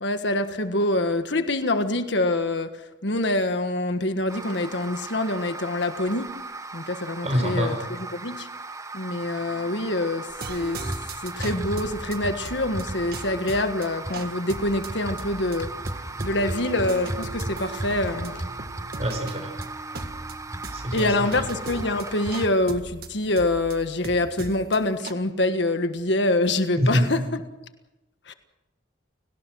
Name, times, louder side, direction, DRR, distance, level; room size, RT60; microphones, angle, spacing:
voice 1, 0.0-6.3 6.7-8.5 8.9-10.8 11.2-18.4 20.9-27.4 28.3-28.4, left 2 dB, 65° left, 8 dB, 1.5 m, -25 dB
sound 1, 4.3-22.5, right 2 dB, 15° right, 0.9 m, -36 dB
voice 2, 7.2-7.7 19.0-19.5 20.7-21.4 26.8-27.0, equal, 35° right, 5 dB, 5.6 m, -25 dB
sound 2, 10.4-25.1, right 2 dB, 50° right, 1.8 m, -39 dB
30.0 x 18.0 x 6.3 m, 0.98 s
head